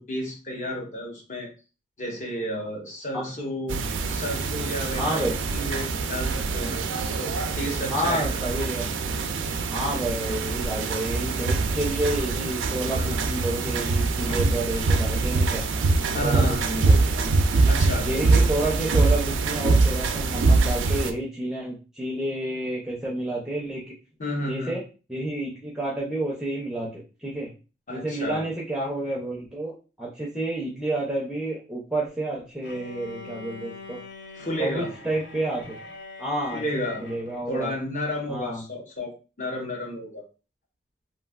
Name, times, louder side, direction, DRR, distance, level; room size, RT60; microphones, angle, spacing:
voice 1, 0.0-1.5 2.0-3.8 4.1-5.2 5.5-6.9 7.2-8.4 13.0-13.3 14.3-14.4 16.1-16.6 17.7-18.5 24.2-24.8 27.9-28.4 34.3-34.9 36.5-37.1 37.5-40.2, equal, 40° left, 0 dB, 0.8 m, -31 dB
sound 1, 3.7-21.1, right 3 dB, 85° right, 0.4 m, -24 dB
voice 2, 4.9-5.3 7.9-8.9 9.7-15.6 16.2-17.1 18.0-23.9 24.5-24.8 25.1-27.5 27.9-34.0 34.6-35.8 36.2-37.7 38.3-38.6, right 1 dB, 5° right, -4 dB, 0.5 m, -30 dB
Bowed string instrument, 32.6-37.5, left 3 dB, 65° left, 0.5 m, -42 dB
3.1 x 2.5 x 2.3 m, 0.33 s
head